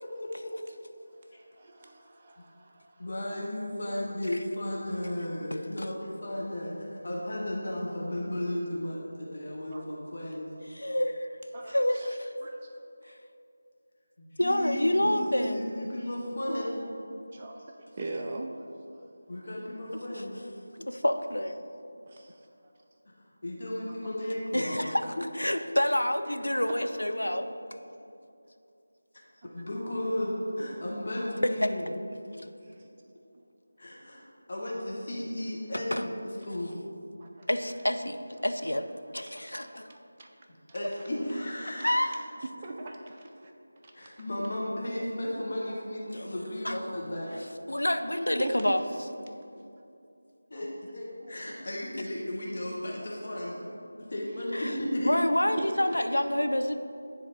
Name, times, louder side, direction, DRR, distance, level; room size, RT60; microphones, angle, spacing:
voice 1, 0.2-0.5 3.0-10.5 14.2-16.9 19.3-20.5 23.4-24.8 26.4-26.7 29.5-31.9 33.8-34.2 34.5-36.1 36.4-36.7 40.7-42.1 43.9-47.3 50.5-53.6 54.1-55.1, left 1 dB, 45° left, -4 dB, 1.0 m, -34 dB
voice 2, 1.0-3.1 6.5-6.6 9.7-9.9 11.5-12.7 14.6-14.8 17.3-19.1 22.1-22.7 26.3-26.6 29.4-29.5 32.6-32.9 33.3-33.5 37.2-37.5 39.3-40.3 40.7-41.1 41.6-41.9 42.4-43.5 43.8-44.1 48.4-48.8 50.5-50.6 51.2-51.4 55.6-56.2, right 2 dB, 25° right, 0 dB, 0.4 m, -42 dB
voice 3, 10.7-11.3 11.7-12.3 14.4-15.7 20.9-21.6 24.5-27.5 31.4-31.7 35.7-36.1 37.5-38.9 39.1-39.9 41.8-42.1 46.6-46.8 47.7-48.8 54.5-54.7 55.0-56.7, left 1 dB, 80° left, 7 dB, 0.4 m, -28 dB
9.8 x 3.3 x 3.9 m, 2.6 s
figure-of-eight pair, 165°, 0 cm